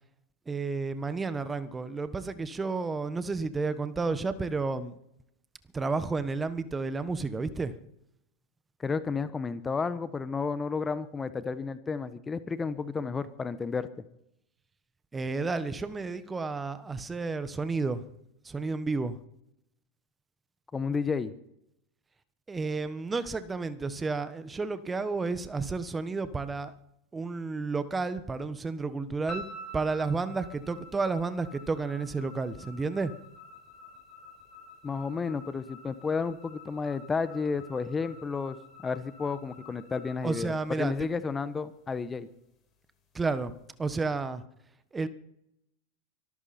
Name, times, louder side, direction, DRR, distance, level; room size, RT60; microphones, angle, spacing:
voice 1, 0.5-5.0 5.7-7.7 15.1-18.0 18.4-19.2 22.5-26.7 27.1-29.5 29.7-33.1 40.2-40.9 43.1-44.4 44.9-45.1, right 4 dB, 15° right, 12 dB, 1.3 m, -31 dB
voice 2, 8.8-13.9 20.7-21.3 34.8-38.6 38.8-42.3, left 5 dB, 20° left, 13 dB, 1.2 m, -32 dB
sound 1, 29.3-41.6, left 1 dB, 35° left, 4.5 m, -49 dB
24.5 x 13.5 x 4.4 m, 0.79 s
hypercardioid pair, 95°, 0 cm